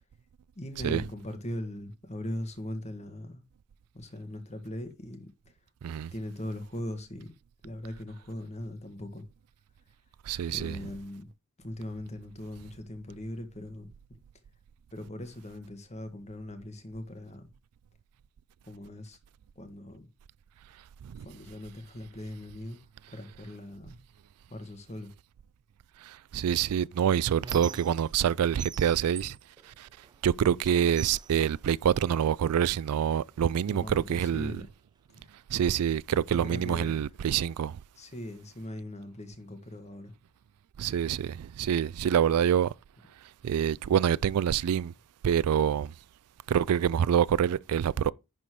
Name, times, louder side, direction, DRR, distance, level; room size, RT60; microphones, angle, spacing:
voice 1, 0.6-3.4 3.9-5.5 6.1-7.3 7.6-9.2 10.5-11.3 11.6-14.2 14.9-17.5 18.6-19.2 19.6-20.1 21.2-22.8 23.1-24.0 24.5-25.1 33.7-34.7 35.1-35.3 36.1-37.0 38.0-40.1, left 1 dB, 30° left, 1.7 m, -40 dB
voice 2, 10.2-10.8 21.0-21.3 26.0-29.4 29.6-29.9 30.2-34.6 35.5-37.8 40.8-42.7 43.4-44.9 45.2-45.9 46.5-48.1, right 8 dB, 85° right, 0.3 m, -26 dB
Squeak, 26.5-28.3 28.6-30.3 30.6-32.3 33.1-33.2 33.6-34.6, right 6 dB, 20° right, 0.4 m, -45 dB
11.0 x 4.3 x 4.7 m
head